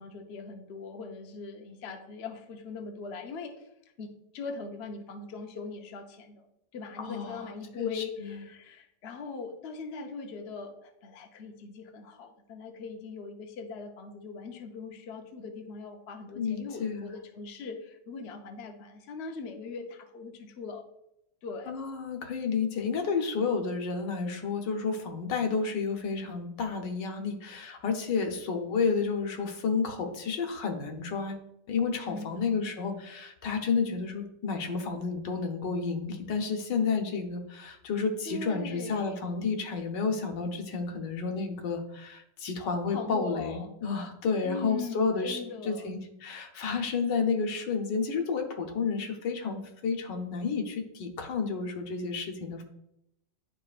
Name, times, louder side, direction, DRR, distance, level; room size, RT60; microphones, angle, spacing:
voice 1, 0.0-3.7 4.0-4.1 4.3-6.5 6.7-20.8 21.4-21.7 32.0-32.5 38.3-39.3 42.9-43.7 44.4-45.9, left 4 dB, 55° left, 3 dB, 0.7 m, -40 dB
voice 2, 7.0-7.5 7.7-8.4 16.3-17.1 21.7-31.4 31.7-52.6, left 5 dB, 80° left, 4 dB, 1.5 m, -31 dB
10.0 x 4.0 x 2.4 m, 0.82 s
omnidirectional pair, 1.9 m